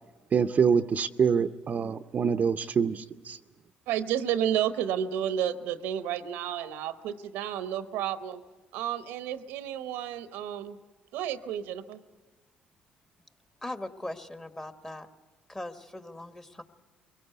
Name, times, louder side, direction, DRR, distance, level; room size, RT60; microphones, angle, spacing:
voice 1, 0.3-3.4, right 6 dB, 45° right, 8 dB, 0.6 m, -25 dB
voice 2, 3.9-8.4 8.7-10.8 11.1-12.0, right 10 dB, 85° right, 11 dB, 0.8 m, -31 dB
voice 3, 13.6-15.1 15.5-16.6, left 1 dB, 20° left, 9 dB, 1.3 m, -39 dB
23.0 x 17.5 x 8.1 m, 1.3 s
supercardioid pair, 70°, 4 cm